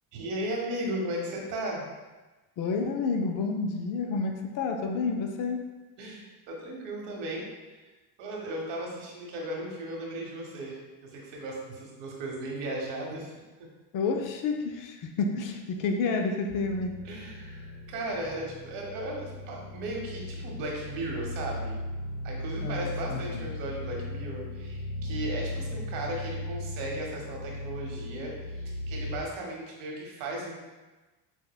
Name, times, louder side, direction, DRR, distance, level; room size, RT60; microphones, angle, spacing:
voice 1, 0.1-1.8 6.0-7.8 8.2-13.4 17.0-21.8 22.2-30.5, right 1 dB, 80° right, -1 dB, 1.0 m, -36 dB
voice 2, 2.6-5.6 13.9-16.9 22.6-23.5, left 4 dB, 50° left, 4 dB, 0.5 m, -30 dB
sound 1, 16.5-29.2, left 1 dB, 25° right, 0.8 m, -37 dB
6.1 x 2.1 x 2.2 m, 1.2 s
cardioid pair, 120°, 43 cm